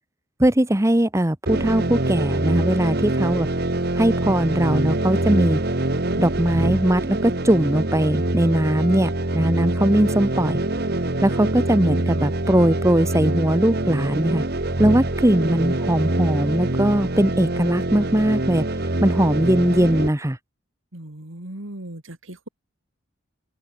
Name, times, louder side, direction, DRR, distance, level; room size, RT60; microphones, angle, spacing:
voice 1, 0.4-3.5 3.9-5.6 6.2-10.6 11.2-14.4 14.8-18.6 19.0-20.4, right 1 dB, 15° right, 1.0 m, -20 dB
sound 1, 1.5-20.1, right 2 dB, 50° right, 1.5 m, -24 dB
voice 2, 20.9-22.5, right 1 dB, 80° right, 3.1 m, -37 dB
open air
head